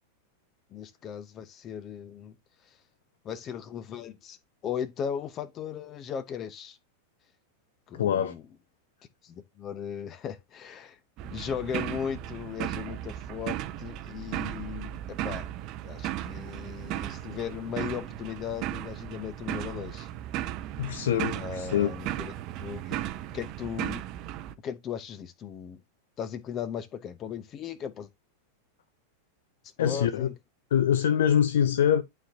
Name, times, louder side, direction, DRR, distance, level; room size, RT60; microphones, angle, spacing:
voice 1, 0.7-2.4 3.2-4.4 4.6-6.8 7.9-8.4 9.2-15.5 15.8-20.1 21.3-22.3 22.6-24.0 24.6-25.8 26.2-28.1 29.8-30.3, left 8 dB, 30° left, 0.9 m, -37 dB
voice 2, 8.0-8.3 20.8-21.9 29.8-30.3 30.7-32.0, left 9 dB, 60° left, 0.5 m, -24 dB
sound 1, 11.2-24.5, right 13 dB, 40° right, 0.6 m, -36 dB
11.0 x 4.4 x 2.7 m
figure-of-eight pair, 90°, 0 cm